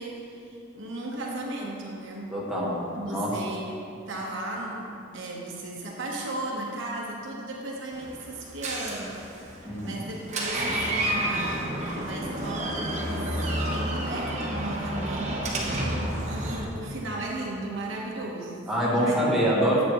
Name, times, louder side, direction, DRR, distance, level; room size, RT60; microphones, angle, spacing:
voice 1, 0.0-2.3 2.9-18.6 18.9-19.2 19.6-19.8, right 2 dB, 60° right, -2 dB, 1.1 m, -36 dB
voice 2, 2.3-3.4 9.6-9.9 18.7-19.8, equal, ahead, -7 dB, 1.4 m, -25 dB
Door, 7.9-16.6, right 1 dB, 35° right, 0.9 m, -30 dB
8.4 x 8.3 x 3.0 m, 2.5 s
head